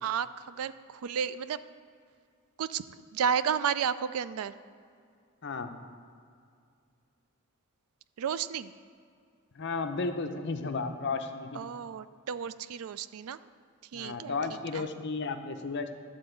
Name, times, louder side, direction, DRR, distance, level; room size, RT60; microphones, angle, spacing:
voice 1, 0.0-1.6 2.6-2.8 3.1-4.5 8.2-8.7 11.6-13.4 13.9-14.3 14.7-14.8, right 7 dB, 80° right, 15 dB, 0.4 m, -32 dB
voice 2, 9.5-11.6 13.9-15.9, left 4 dB, 50° left, 7 dB, 0.6 m, -33 dB
11.5 x 3.9 x 7.9 m, 2.3 s
head